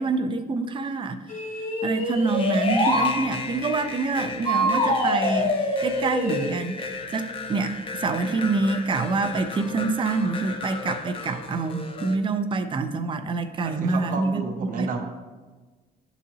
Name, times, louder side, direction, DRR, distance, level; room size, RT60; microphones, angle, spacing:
voice 1, 0.0-1.4 1.8-14.4 14.8-15.0, right 3 dB, 30° right, 8 dB, 0.5 m, -26 dB
sound 1, 1.3-3.1 4.4-6.5, left 1 dB, 55° left, 2.0 m, -24 dB
sound 2, 2.3-12.2, left 4 dB, 35° left, 0.6 m, -35 dB
voice 2, 13.6-15.0, right 4 dB, 55° right, 4 dB, 0.8 m, -32 dB
11.0 x 4.0 x 2.8 m, 1.3 s
cardioid pair, 115°, 17 cm